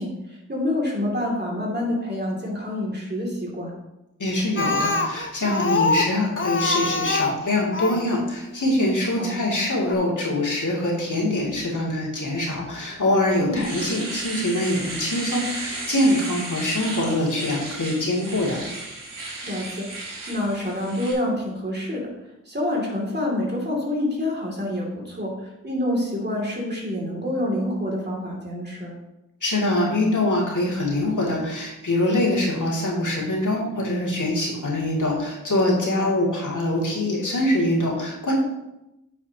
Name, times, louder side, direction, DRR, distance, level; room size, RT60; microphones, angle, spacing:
voice 1, 0.0-3.7 9.2-9.4 13.4-13.7 19.4-22.1 22.5-28.9 35.9-36.2, left 1 dB, 30° right, -2 dB, 2.7 m, -27 dB
voice 2, 4.2-18.6 29.4-38.3, left 1 dB, 70° left, -4 dB, 2.7 m, -24 dB
Speech, 4.6-8.1 9.0-9.1 9.5-9.6 9.9-10.0, left 3 dB, 40° left, 0.8 m, -24 dB
Domestic sounds home sounds, 12.9-13.0 13.4-21.1, right 2 dB, 90° right, 1.8 m, -34 dB
9.0 x 7.2 x 2.9 m, 0.92 s
cardioid pair, 50°, 32 cm